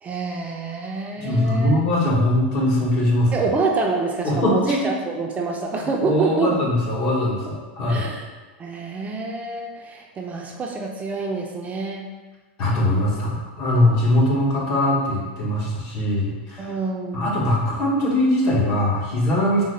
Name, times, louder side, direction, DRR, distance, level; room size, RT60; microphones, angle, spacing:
voice 1, 0.0-1.8 3.3-6.6 7.9-8.3 8.6-12.1 16.6-17.4, right 4 dB, 25° right, 1 dB, 0.4 m, -26 dB
voice 2, 1.2-3.4 4.2-4.9 6.0-8.1 12.6-16.7 17.1-19.6, left 1 dB, 55° left, -4 dB, 1.1 m, -21 dB
3.6 x 2.1 x 3.1 m, 1.3 s
hypercardioid pair, 115°, 6 cm